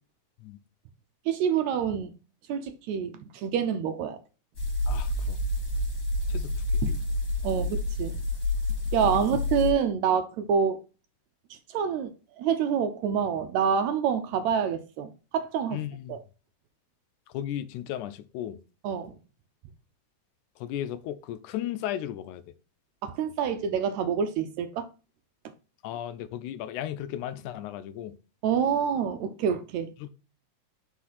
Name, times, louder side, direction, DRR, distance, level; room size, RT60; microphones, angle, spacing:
voice 1, 1.3-2.1 2.5-4.2 6.8-7.0 7.4-8.2 8.9-10.8 11.5-12.1 12.4-15.8 16.1-16.2 18.8-19.2 23.0-24.9 28.4-29.9, right 7 dB, 75° right, 1.8 m, -27 dB
sound 1, 4.5-9.7, left 2 dB, 35° left, 3.6 m, -29 dB
voice 2, 4.9-5.4 6.3-6.8 15.7-16.2 17.3-18.6 20.6-22.4 25.8-28.2 30.0-30.1, left 11 dB, 80° left, 2.0 m, -35 dB
5.9 x 5.1 x 4.1 m
omnidirectional pair, 3.6 m